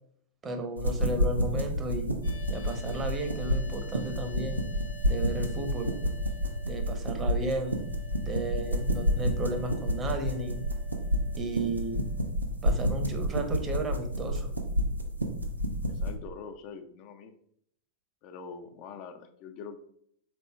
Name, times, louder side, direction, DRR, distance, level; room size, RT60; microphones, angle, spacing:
voice 1, 0.4-2.1 2.5-4.6 5.0-5.9 6.6-7.8 8.3-10.6 11.4-12.1 12.6-14.5, right 2 dB, 25° right, 5 dB, 0.7 m, -34 dB
sound 1, 0.8-16.1, equal, 85° right, 0.5 m, -30 dB
sound 2, 2.2-12.3, right 3 dB, 70° left, 0.8 m, -51 dB
voice 2, 15.9-17.3 18.2-19.8, left 5 dB, 40° left, 7 dB, 0.4 m, -44 dB
5.0 x 4.1 x 2.3 m, 0.68 s
figure-of-eight pair, 90°, 0 cm